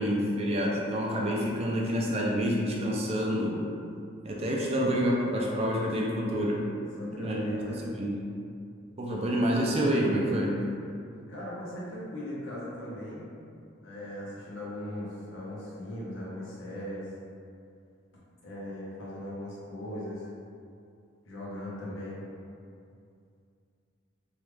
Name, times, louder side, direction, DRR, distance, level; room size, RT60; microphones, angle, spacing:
voice 1, 0.0-3.5 4.2-6.6 7.2-8.1 9.0-10.6, equal, 30° right, -3 dB, 0.4 m, -28 dB
voice 2, 7.0-7.9 11.3-13.3 13.8-17.1 18.4-20.2 21.2-22.3, left 1 dB, 80° left, -6 dB, 0.9 m, -38 dB
3.1 x 2.4 x 3.2 m, 2.4 s
head